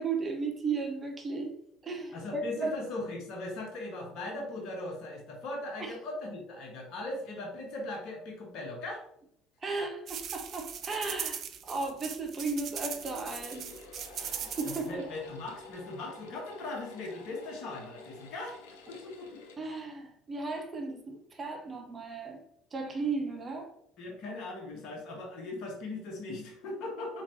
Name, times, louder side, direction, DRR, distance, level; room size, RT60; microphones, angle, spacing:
voice 1, 0.0-2.8 5.8-6.0 9.6-13.7 14.5-15.1 19.6-22.4 22.7-23.7, right 3 dB, 30° right, 3 dB, 0.9 m, -35 dB
voice 2, 2.1-9.0 14.2-18.6 18.9-19.3 24.0-27.2, left 2 dB, 55° left, 0 dB, 1.4 m, -39 dB
sound 1, 10.1-14.9, right 8 dB, 45° right, 0.4 m, -39 dB
sound 2, 12.4-19.6, left 4 dB, 70° left, 0.6 m, -50 dB
4.3 x 4.0 x 2.7 m, 0.72 s
figure-of-eight pair, 60°, 0 cm